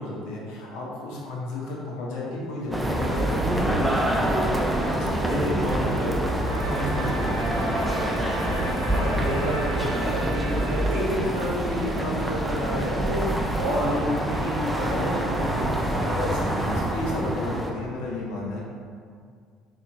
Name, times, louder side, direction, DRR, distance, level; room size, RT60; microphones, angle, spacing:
voice 1, 0.0-4.6 4.9-5.3 6.6-7.7 16.2-18.6, left 1 dB, 65° left, -4 dB, 0.6 m, -33 dB
sound 1, 2.7-17.7, right 1 dB, 5° right, 0.3 m, -26 dB
voice 2, 5.2-6.2 8.4-8.6 8.9-13.3 13.6-16.1, equal, 70° right, -10 dB, 0.9 m, -30 dB
sound 2, 6.4-13.3, right 1 dB, 90° right, 0.4 m, -36 dB
2.8 x 2.7 x 2.2 m, 2.1 s
hypercardioid pair, 60°, 0 cm